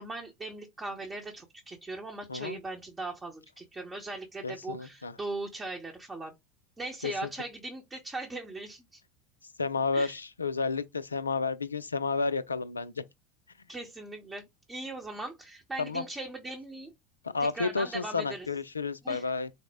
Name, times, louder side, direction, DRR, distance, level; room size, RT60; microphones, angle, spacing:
voice 1, 0.0-6.3 6.8-9.0 9.9-10.1 13.7-16.9 17.4-18.5 19.0-19.2, right 2 dB, 15° right, 0.8 m, -39 dB
voice 2, 2.3-2.6 4.4-5.2 7.0-7.3 9.6-12.9 15.8-16.0 17.3-19.5, left 4 dB, 80° left, 0.3 m, -31 dB
4.1 x 2.0 x 3.5 m
figure-of-eight pair, 75°, 0 cm